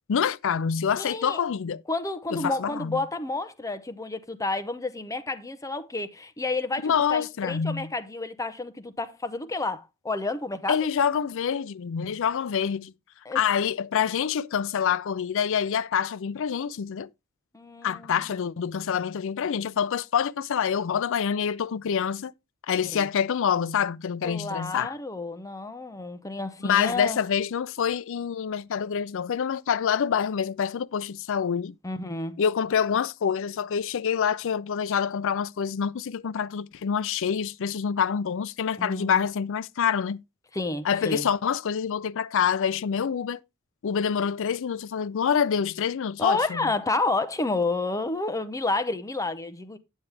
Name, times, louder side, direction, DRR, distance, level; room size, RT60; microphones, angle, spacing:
voice 1, 0.1-1.8 2.3-3.0 6.8-7.9 10.7-12.9 13.3-17.1 17.8-22.3 22.7-24.9 26.6-31.8 32.4-40.2 40.8-43.4 43.8-46.7, left 7 dB, 65° left, 0.4 m, -26 dB
voice 2, 1.0-1.4 1.9-10.8 13.3-13.4 17.5-18.1 22.9-23.0 24.2-27.2 31.8-32.3 38.8-39.3 40.5-41.3 46.2-49.8, left 2 dB, 15° left, 0.6 m, -30 dB
9.4 x 7.3 x 3.3 m
head